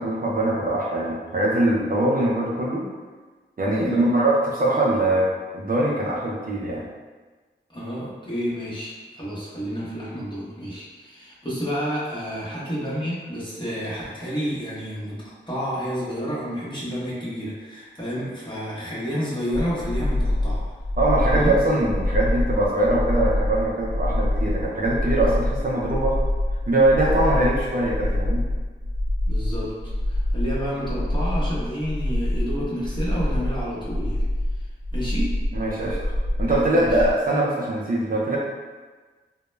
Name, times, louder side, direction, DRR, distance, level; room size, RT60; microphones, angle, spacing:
voice 1, 0.0-2.9 3.6-5.3 5.5-6.8 21.0-26.2 26.7-28.4 35.5-36.1 36.4-38.4, right 1 dB, 45° right, -5 dB, 0.4 m, -22 dB
voice 2, 3.8-4.2 7.7-15.2 15.5-20.6 21.2-21.6 25.3-25.4 29.3-34.2 34.9-35.3 36.7-37.0, equal, 25° left, -8 dB, 0.8 m, -30 dB
sound 1, 19.5-37.1, left 1 dB, 80° left, 0.5 m, -25 dB
2.1 x 2.1 x 3.1 m, 1.4 s
wide cardioid pair, 70°, 20 cm